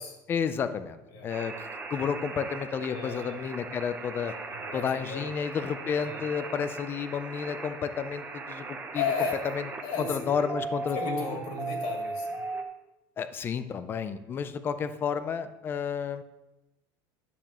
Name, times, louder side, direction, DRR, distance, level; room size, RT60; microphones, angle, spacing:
voice 1, 0.3-4.3 4.7-9.1 9.4-9.7 10.0-11.3 13.2-16.2, left 7 dB, 20° left, 12 dB, 0.4 m, -31 dB
sound 1, 1.3-12.6, right 3 dB, 15° right, 0.7 m, -38 dB
voice 2, 2.9-3.4 4.5-5.3 6.0-6.2 8.9-9.5 9.8-10.3 10.9-12.4, left 5 dB, 55° left, 1 dB, 1.8 m, -34 dB
11.0 x 7.0 x 3.0 m, 0.96 s
cardioid pair, 170°, 11 cm